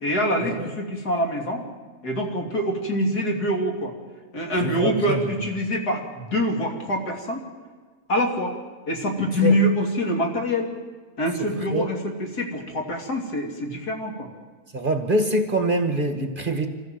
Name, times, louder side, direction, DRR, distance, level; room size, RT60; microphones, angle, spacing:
voice 1, 0.0-1.7 2.0-3.9 4.3-7.4 8.1-8.6 8.9-10.7 11.2-14.3, equal, 85° left, 2 dB, 3.6 m, -25 dB
voice 2, 4.5-5.2 9.4-9.6 11.7-11.9 14.7-16.7, right 2 dB, 35° right, 7 dB, 1.8 m, -24 dB
26.0 x 15.0 x 7.7 m, 1.5 s
omnidirectional pair, 1.6 m